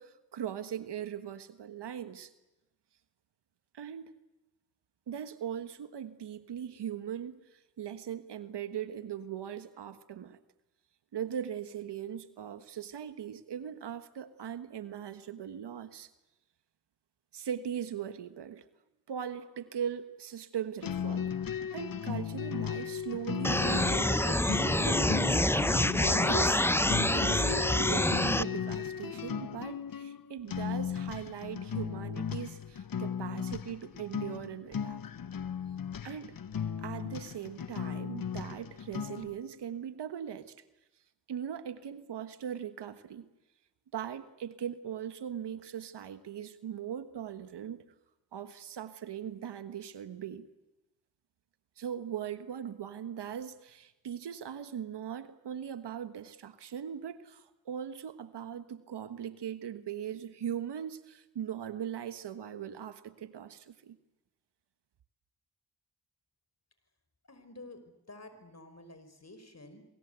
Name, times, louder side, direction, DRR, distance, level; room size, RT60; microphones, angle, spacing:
voice 1, 0.0-2.3 3.7-4.1 5.1-10.4 11.1-16.1 17.3-18.6 19.1-21.3 21.7-25.4 26.2-26.6 27.0-35.0 36.0-36.3 36.8-40.5 41.3-43.3 43.9-47.8 48.3-50.5 51.8-64.0, right 9 dB, 85° right, 11 dB, 1.4 m, -40 dB
sound 1, 20.8-39.4, left 7 dB, 55° left, 1.1 m, -36 dB
sound 2, 23.4-28.4, left 1 dB, 5° left, 0.9 m, -27 dB
voice 2, 67.3-69.9, left 2 dB, 40° left, 10 dB, 5.4 m, -50 dB
27.0 x 24.0 x 8.1 m, 0.97 s
supercardioid pair, 40°, 40 cm